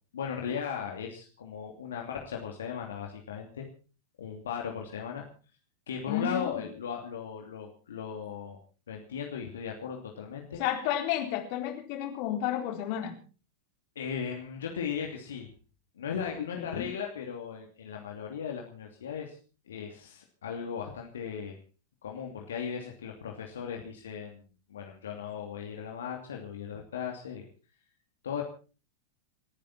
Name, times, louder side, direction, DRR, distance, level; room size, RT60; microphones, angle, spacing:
voice 1, 0.1-3.7 4.2-5.2 5.9-8.6 8.9-10.6 13.9-15.5 16.0-19.4 19.7-21.6 22.0-27.4 28.2-28.4, left 7 dB, 65° left, 1 dB, 2.8 m, -37 dB
voice 2, 6.1-6.5 10.6-13.2 16.2-16.3 16.6-16.9, left 11 dB, 45° left, 4 dB, 3.9 m, -31 dB
29.5 x 10.5 x 4.3 m, 0.36 s
figure-of-eight pair, 90°, 0 cm